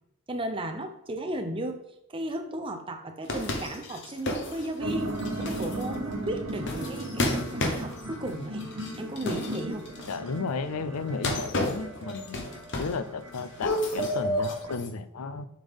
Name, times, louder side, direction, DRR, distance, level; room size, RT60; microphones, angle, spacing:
voice 1, 0.3-1.8 2.1-8.7 9.0-9.9, right 1 dB, 25° right, 5 dB, 0.6 m, -35 dB
sound 1, 3.2-10.3 11.1-13.1 13.3-14.9, left 1 dB, 55° left, 1.0 m, -33 dB
sound 2, 4.8-14.8, right 1 dB, 90° right, 1.1 m, -35 dB
voice 2, 10.1-12.5 12.8-15.5, left 4 dB, 80° left, 13 dB, 0.5 m, -33 dB
7.2 x 5.7 x 3.6 m, 0.80 s
head